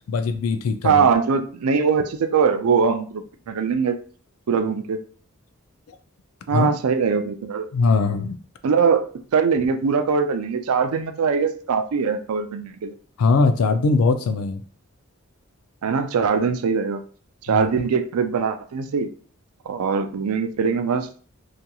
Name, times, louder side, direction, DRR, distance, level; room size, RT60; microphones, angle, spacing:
voice 1, 0.1-1.1 5.9-6.0 6.5-6.7 7.7-8.4 13.2-14.6 17.5-17.7, left 4 dB, 75° left, 9 dB, 0.4 m, -21 dB
voice 2, 0.8-4.0 4.5-5.0 6.5-7.7 8.6-12.9 15.8-17.0 17.4-19.1 19.7-21.1, right 5 dB, 80° right, 7 dB, 0.4 m, -22 dB
2.9 x 2.4 x 2.3 m, 0.43 s
head